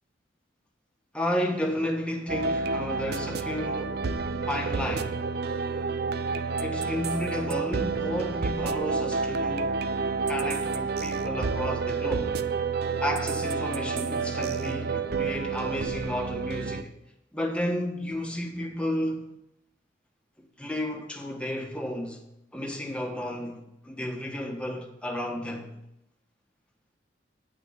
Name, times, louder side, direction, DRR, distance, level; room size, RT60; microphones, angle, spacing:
voice 1, 1.1-4.1 4.4-5.2 6.6-9.8 10.3-12.4 13.0-16.9 17.3-19.3 20.6-22.2 22.5-25.7, left 1 dB, 5° left, 1.4 m, -32 dB
sound 1, 2.3-16.8, right 4 dB, 60° right, 0.5 m, -29 dB
9.1 x 6.1 x 8.0 m
head